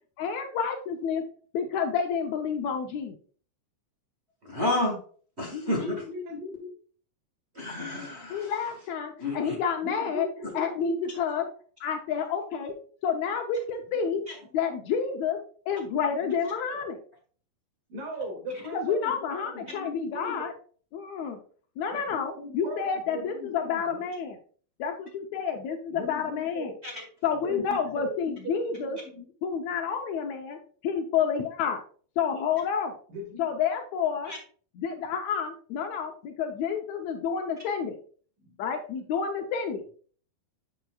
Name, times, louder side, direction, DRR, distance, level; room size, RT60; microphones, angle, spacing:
voice 1, 0.2-1.2 1.5-3.1 8.3-10.3 10.5-11.5 11.8-12.7 13.0-14.2 14.5-15.4 15.7-17.0 18.7-20.5 20.9-21.4 21.8-24.4 24.8-26.7 27.2-29.0 29.4-30.6 30.8-31.8 32.2-32.9 33.4-34.3 34.7-38.0 38.6-39.8, left 6 dB, 75° left, 3 dB, 1.7 m, -29 dB
voice 2, 4.4-5.0 5.4-5.9 7.5-8.5 9.2-9.5 26.8-26.9 34.3-34.4, left 1 dB, 35° right, -2 dB, 0.9 m, -30 dB
voice 3, 5.5-6.7 9.8-11.1 15.8-16.3 16.7-16.9 17.9-20.5 21.9-24.0 25.9-26.8 27.4-29.2 33.1-33.5 38.4-38.7, left 1 dB, 70° right, 0 dB, 4.0 m, -39 dB
8.1 x 7.3 x 2.4 m, 0.43 s
omnidirectional pair, 4.1 m